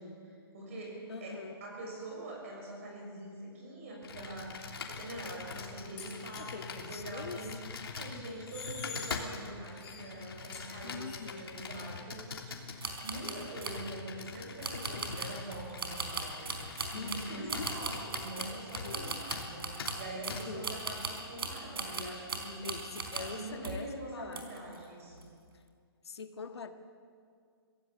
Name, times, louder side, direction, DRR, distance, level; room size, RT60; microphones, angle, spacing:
voice 1, 0.0-7.6 8.0-12.7 13.0-22.7 23.2-25.2, right 1 dB, 35° right, -1 dB, 6.4 m, -44 dB
voice 2, 1.1-1.5 6.4-7.5 10.8-11.5 16.9-17.7 18.8-19.2 20.3-20.7 22.6-24.6 26.0-26.7, left 5 dB, 85° left, 7 dB, 1.7 m, -44 dB
Computer keyboard, 4.0-19.0 19.3-19.5 19.8-19.9 20.3-20.4, left 5 dB, 65° left, 3.1 m, -43 dB
sound 1, 5.5-5.6 6.0-6.4 8.3-9.3 9.8-11.1, left 5 dB, 10° left, 4.0 m, -46 dB
sound 2, 12.8-13.8 14.6-23.4 23.6-23.9 24.3-24.8 25.1-25.3, right 4 dB, 65° right, 4.4 m, -39 dB
25.0 x 17.0 x 7.7 m, 2.2 s
hypercardioid pair, 180°, 13 cm